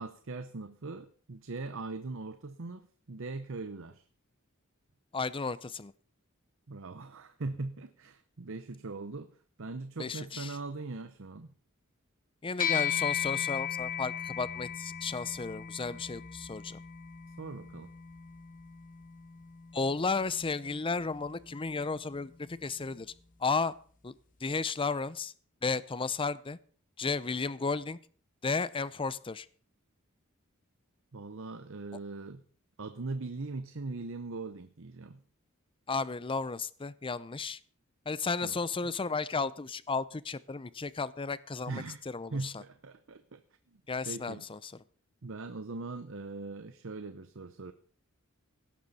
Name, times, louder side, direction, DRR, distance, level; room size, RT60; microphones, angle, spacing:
voice 1, 0.0-4.0 6.7-9.3 9.6-11.5 17.4-17.9 31.1-32.4 32.8-35.2 38.4-38.6 41.7-42.0 42.3-43.4 43.7-44.4 45.2-47.7, right 3 dB, 65° right, 10 dB, 0.8 m, -40 dB
voice 2, 5.1-5.9 10.0-10.6 12.4-16.8 19.7-22.3 22.6-23.1 23.4-23.7 24.0-24.1 24.4-25.3 25.6-26.6 27.0-28.0 28.4-29.5 35.9-37.6 38.1-42.6 43.9-44.7, left 4 dB, 25° left, 18 dB, 0.6 m, -33 dB
sound 1, 12.6-22.2, left 9 dB, 40° left, 1.4 m, -37 dB
17.0 x 12.0 x 4.2 m, 0.43 s
head